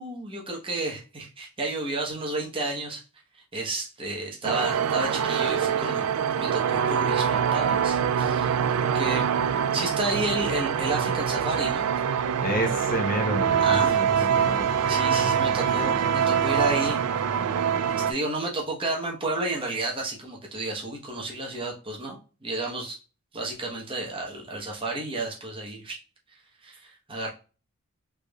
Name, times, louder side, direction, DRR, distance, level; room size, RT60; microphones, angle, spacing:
voice 1, 0.0-3.0 3.5-6.0 6.4-9.2 9.7-11.9 13.6-14.3 14.9-17.0 17.9-23.0 23.3-26.0 26.6-27.3, right 2 dB, 25° right, 0.9 m, -31 dB
sound 1, 4.4-18.1, right 7 dB, 90° right, 0.3 m, -24 dB
voice 2, 12.4-14.7, equal, 40° left, 0.8 m, -29 dB
3.4 x 3.3 x 2.3 m
head